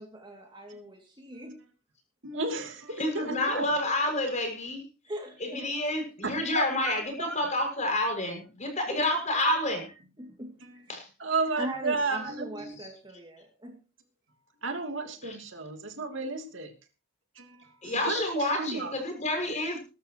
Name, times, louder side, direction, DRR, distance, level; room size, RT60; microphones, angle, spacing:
voice 1, 0.0-1.6 5.1-5.7 8.9-9.0 10.2-10.5 11.6-13.8, right 1 dB, 20° right, 2 dB, 2.5 m, -40 dB
voice 2, 2.2-3.7 6.2-7.7 9.4-9.6 10.6-10.8 11.2-12.7 14.6-16.7 17.3-18.9, right 3 dB, 60° right, 4 dB, 2.9 m, -33 dB
voice 3, 3.0-4.8 5.4-9.8 10.9-11.1 12.8-12.9 15.2-15.3 17.8-19.8, left 1 dB, 35° left, 4 dB, 6.3 m, -29 dB
21.0 x 12.5 x 3.0 m, 0.34 s
head